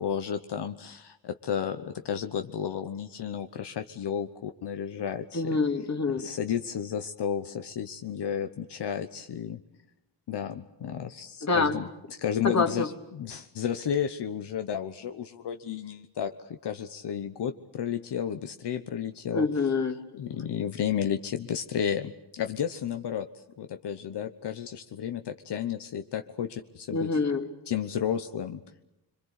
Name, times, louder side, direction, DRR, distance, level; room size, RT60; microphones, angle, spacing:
voice 1, 0.0-5.6 6.2-9.6 10.3-11.9 12.2-19.5 20.1-23.3 23.6-27.1 27.7-28.6, left 8 dB, 80° left, 7 dB, 1.1 m, -32 dB
voice 2, 5.3-6.3 11.4-11.8 12.4-12.9 19.3-20.0 26.9-27.5, left 3 dB, 40° left, 6 dB, 2.5 m, -26 dB
26.5 x 23.5 x 8.3 m, 0.88 s
cardioid pair, 90°, 40 cm